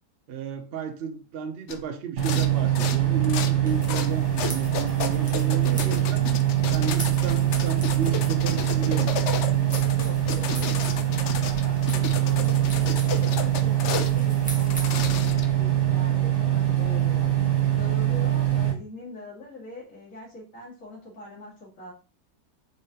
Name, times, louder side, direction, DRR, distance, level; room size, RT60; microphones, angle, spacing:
voice 1, 0.3-6.2 6.7-9.3, right 6 dB, 75° right, 0.5 m, -33 dB
sound 1, 1.7-1.8 2.2-2.5 2.7-3.5 3.8-4.1 4.4-14.1 14.6-15.6, left 6 dB, 75° left, 0.6 m, -32 dB
sound 2, 2.2-18.7, right 12 dB, 45° right, 1.3 m, -23 dB
sound 3, 3.6-15.0, equal, 5° left, 0.7 m, -42 dB
voice 2, 6.7-7.1 10.0-17.3 17.7-21.9, left 2 dB, 50° left, 2.5 m, -43 dB
4.9 x 3.7 x 2.8 m
omnidirectional pair, 1.8 m